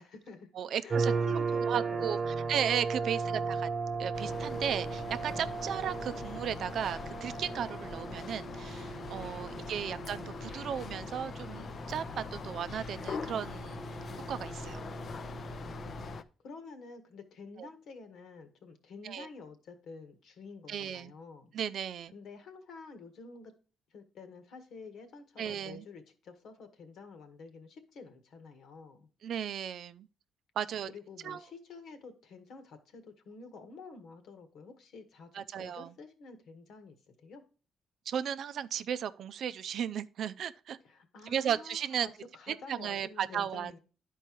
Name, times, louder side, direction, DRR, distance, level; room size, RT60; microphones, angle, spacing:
voice 1, 0.0-0.5 0.8-2.6 3.2-3.7 15.6-16.1 16.4-21.5 22.1-23.5 23.9-29.1 30.9-37.4 40.8-43.8, left 4 dB, 70° left, 1.6 m, -49 dB
voice 2, 0.5-1.1 1.7-3.7 4.0-13.8 14.3-14.8 17.6-17.7 19.0-19.3 20.7-21.1 21.5-22.1 25.4-25.8 29.2-30.1 30.6-30.9 31.2-31.4 35.3-35.9 38.1-40.8 41.3-42.1 42.5-43.8, right 9 dB, 65° right, 0.5 m, -35 dB
sound 1, 0.9-16.2, right 4 dB, 40° right, 0.8 m, -37 dB
sound 2, 4.1-16.2, left 5 dB, 50° left, 0.6 m, -42 dB
10.5 x 4.6 x 4.6 m
cardioid pair, 90°, 0 cm